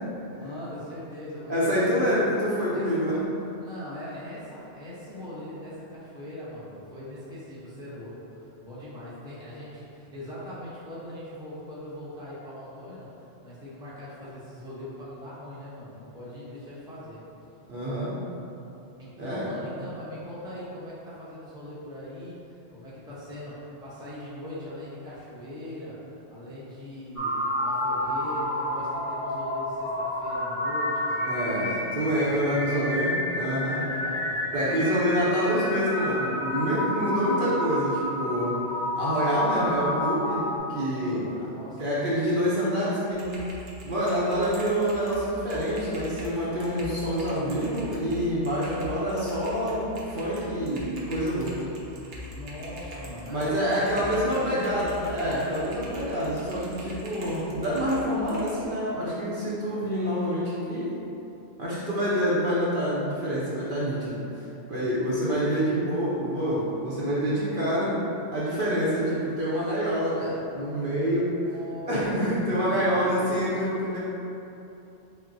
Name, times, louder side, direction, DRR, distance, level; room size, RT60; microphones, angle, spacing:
voice 1, 0.3-2.2 2.7-3.2 3.6-17.2 19.0-31.8 32.2-33.0 33.6-35.0 40.9-42.2 46.6-46.9 52.3-55.1 59.7-59.9 71.0-73.4, left 1 dB, 5° right, -9 dB, 0.7 m, -41 dB
voice 2, 1.5-3.3 17.6-18.2 19.2-19.5 31.3-33.8 34.5-38.6 39.0-41.3 41.8-43.3 43.8-51.7 53.3-60.9 61.6-68.0 68.3-71.3 71.9-74.0, equal, 55° right, -8 dB, 0.8 m, -27 dB
sound 1, 27.1-40.6, left 1 dB, 85° left, 1.2 m, -30 dB
Typing, 43.1-58.6, left 1 dB, 85° right, 1.0 m, -43 dB
5.8 x 2.1 x 2.6 m, 2.9 s
omnidirectional pair, 1.2 m